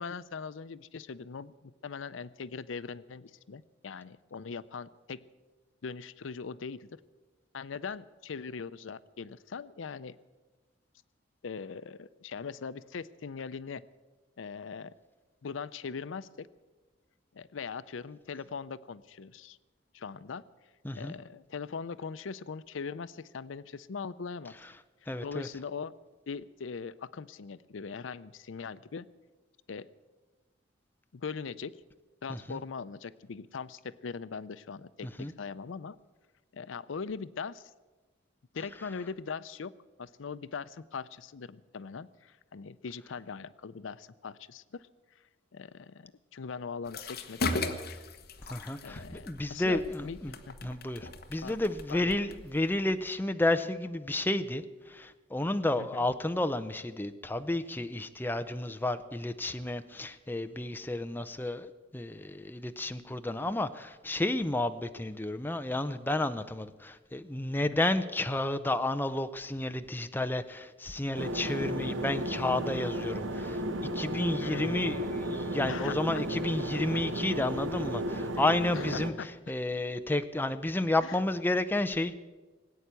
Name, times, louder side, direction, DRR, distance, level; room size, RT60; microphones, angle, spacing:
voice 1, 0.0-5.2 5.8-7.0 7.5-10.2 11.4-13.8 14.4-14.9 15.4-16.5 17.3-19.6 19.9-20.4 20.9-24.5 25.0-25.9 26.3-29.1 29.7-29.9 31.1-31.8 32.2-36.0 36.5-37.7 38.5-39.7 40.0-44.9 45.5-47.5 48.8-50.7 51.4-51.6 51.9-52.2 55.8-56.1 67.7-67.8 74.4-75.0 75.7-76.2 76.9-77.0 78.7-79.3 81.0-81.2, left 5 dB, 90° left, 16 dB, 0.5 m, -41 dB
voice 2, 25.1-25.5 32.3-32.6 35.2-35.3 48.5-50.3 50.6-54.6 54.9-73.6 74.0-79.1 79.5-82.2, left 1 dB, 10° left, 9 dB, 0.6 m, -31 dB
sound 1, 46.8-53.1, left 2 dB, 55° left, 1.2 m, -38 dB
sound 2, 71.1-79.1, right 1 dB, 80° right, 1.3 m, -34 dB
18.5 x 8.9 x 8.2 m, 1.2 s
head